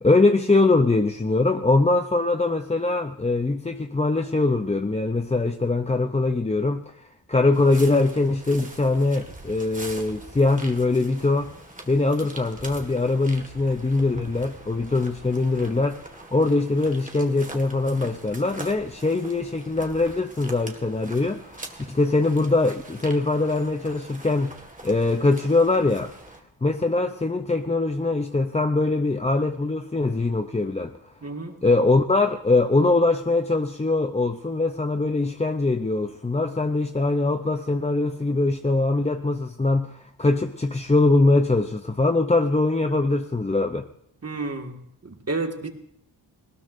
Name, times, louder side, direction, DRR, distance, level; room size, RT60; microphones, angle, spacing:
voice 1, 0.0-11.5 11.9-26.1 26.6-30.9 31.6-43.9, left 2 dB, 15° left, 7 dB, 0.5 m, -22 dB
sound 1, 7.5-26.4, right 2 dB, 15° right, 1.7 m, -43 dB
voice 2, 31.2-31.5 44.2-45.7, right 3 dB, 30° right, 4 dB, 1.9 m, -31 dB
21.0 x 19.5 x 2.6 m, 0.73 s
wide cardioid pair, 150°, 46 cm